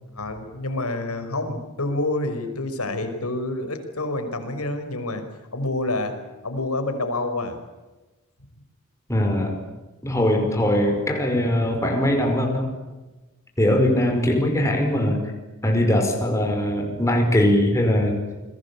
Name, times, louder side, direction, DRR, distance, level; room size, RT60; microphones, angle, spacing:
voice 1, 0.2-5.2 5.5-6.2 6.4-7.6, left 2 dB, 85° left, 8 dB, 5.4 m, -28 dB
voice 2, 9.1-9.6 10.0-12.7 13.6-15.2 15.6-18.2, left 1 dB, 15° left, 2 dB, 5.2 m, -21 dB
29.5 x 22.0 x 8.5 m, 1.1 s
head